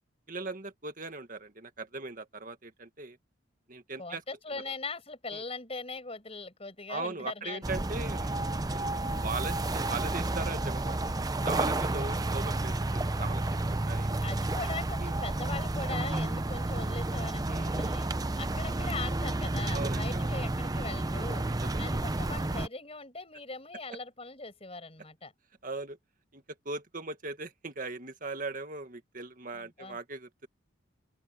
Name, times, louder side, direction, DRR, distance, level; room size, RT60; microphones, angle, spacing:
voice 1, 0.3-3.2 3.7-4.2 4.6-4.7 5.3-5.4 6.9-8.3 8.7-11.0 11.5-13.4 13.7-14.1 15.0-15.2 17.5-17.7 19.7-20.3 21.4-21.8 25.6-26.0 26.3-30.5, right 3 dB, 45° right, 1.9 m, -39 dB
voice 2, 4.0-7.7 11.7-12.2 14.2-18.1 18.4-21.4 21.8-25.3 29.5-30.0, left 3 dB, 30° left, 6.3 m, -40 dB
sound 1, 7.6-22.7, right 2 dB, 20° right, 0.6 m, -31 dB
open air
head